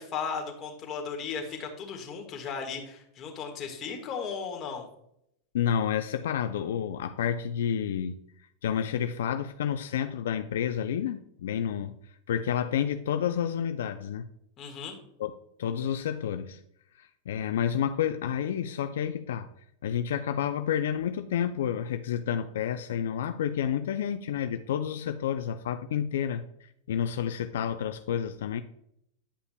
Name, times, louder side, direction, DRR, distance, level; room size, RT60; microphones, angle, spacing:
voice 1, 0.0-4.9 14.6-15.0, left 6 dB, 35° left, 1.6 m, -36 dB
voice 2, 5.5-8.2 8.6-12.0 12.3-14.3 15.2-15.3 15.6-16.6 17.0-19.5 19.8-28.6, left 9 dB, 80° left, 0.4 m, -30 dB
9.8 x 5.5 x 2.2 m
hypercardioid pair, 125°, 0 cm